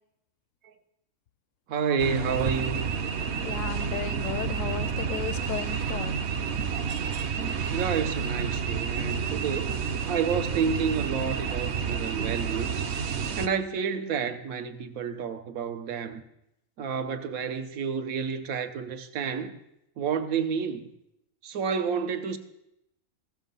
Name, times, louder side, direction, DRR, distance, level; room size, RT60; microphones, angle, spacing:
voice 1, 1.7-2.9 7.7-9.8 10.1-12.8 13.4-16.2 16.8-19.6 20.0-20.9 21.4-22.4, right 6 dB, 85° right, 1.2 m, -30 dB
sound 1, 2.0-13.5, right 6 dB, 60° right, 0.8 m, -30 dB
voice 2, 3.4-6.2, left 9 dB, 75° left, 0.9 m, -35 dB
14.5 x 7.2 x 5.4 m
omnidirectional pair, 1.4 m